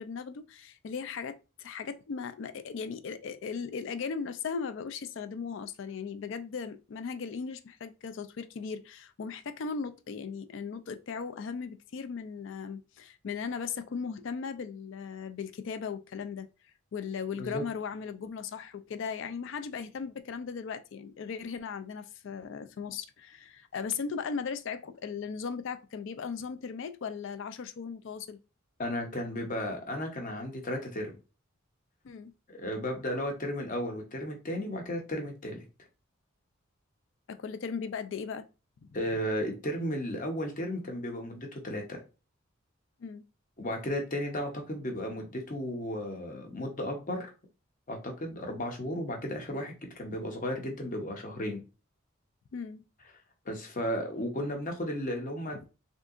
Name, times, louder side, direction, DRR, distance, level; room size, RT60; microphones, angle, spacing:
voice 1, 0.0-16.5 16.9-28.4 32.0-32.3 37.3-38.5 43.0-43.2 52.5-52.9, left 5 dB, 60° left, 0.4 m, -37 dB
voice 2, 28.8-31.1 32.5-35.6 38.9-42.0 43.6-47.3 47.9-51.6 53.5-55.6, equal, 40° left, 0.8 m, -34 dB
3.5 x 2.7 x 2.4 m
head